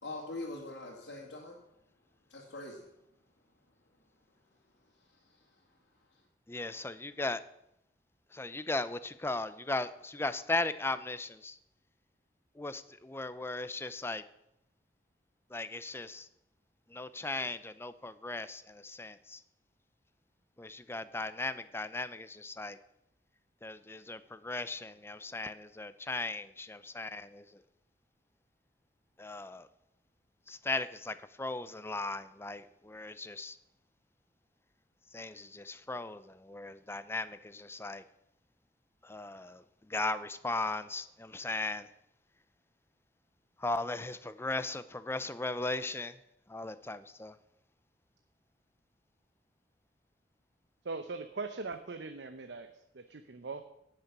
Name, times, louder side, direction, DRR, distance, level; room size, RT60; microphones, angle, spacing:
voice 1, 0.0-1.6 2.3-2.8, left 2 dB, 70° left, -4 dB, 2.3 m, -42 dB
voice 2, 6.5-7.4 8.3-11.6 12.5-14.2 15.5-16.3 16.9-19.4 20.6-22.8 23.6-27.6 29.2-29.7 30.5-33.6 35.1-38.0 39.0-41.9 43.6-46.2 46.5-47.4, left 2 dB, 15° left, 13 dB, 0.6 m, -37 dB
voice 3, 50.8-52.7 52.9-53.6, right 3 dB, 70° right, 7 dB, 0.8 m, -40 dB
17.5 x 6.7 x 6.0 m, 0.81 s
head